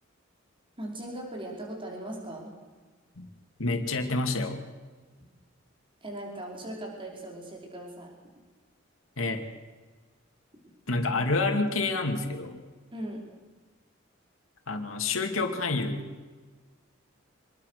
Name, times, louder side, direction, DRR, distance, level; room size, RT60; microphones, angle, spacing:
voice 1, 0.8-2.5 6.0-8.1 12.9-13.2, right 1 dB, 25° right, -1 dB, 5.2 m, -39 dB
voice 2, 3.6-4.6 9.2-9.4 10.9-12.6 14.7-16.1, left 3 dB, 90° left, 4 dB, 2.5 m, -28 dB
26.5 x 22.0 x 6.7 m, 1.4 s
head